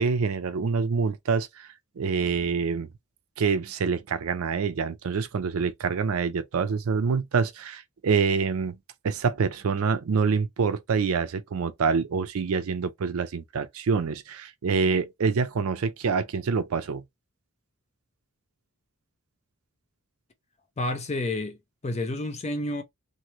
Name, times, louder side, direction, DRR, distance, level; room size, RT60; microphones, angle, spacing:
voice 1, 0.0-1.7 2.0-2.9 3.4-8.8 9.0-17.0, right 5 dB, 70° right, 0.4 m, -26 dB
voice 2, 20.8-21.6 21.8-22.8, left 2 dB, 30° left, 0.5 m, -29 dB
2.8 x 2.6 x 3.0 m
head